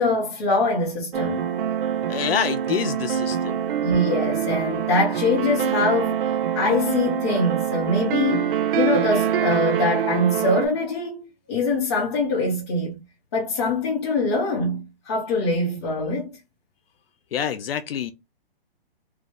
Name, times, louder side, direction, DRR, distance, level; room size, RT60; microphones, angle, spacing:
voice 1, 0.0-1.5 3.8-6.3 6.5-13.0 13.3-16.3, left 2 dB, 30° left, 0.8 m, -23 dB
sound 1, 1.1-10.7, right 9 dB, 65° right, 0.4 m, -25 dB
voice 2, 2.1-3.6 17.3-18.1, left 8 dB, 75° left, 0.5 m, -26 dB
2.6 x 2.2 x 3.6 m
hypercardioid pair, 170°, 30 cm